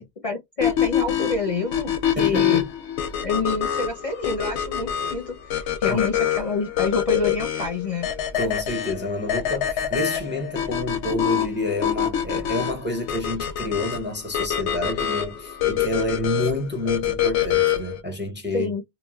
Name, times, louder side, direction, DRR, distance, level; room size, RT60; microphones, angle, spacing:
voice 1, 0.0-2.6 3.2-8.1 12.3-12.4 18.5-18.8, left 3 dB, 45° left, 0.5 m, -28 dB
sound 1, 0.6-18.0, left 10 dB, 85° left, 0.9 m, -25 dB
voice 2, 2.2-2.7 5.9-6.0 8.3-18.7, left 1 dB, 15° right, 0.6 m, -28 dB
3.0 x 2.4 x 2.2 m
omnidirectional pair, 1.1 m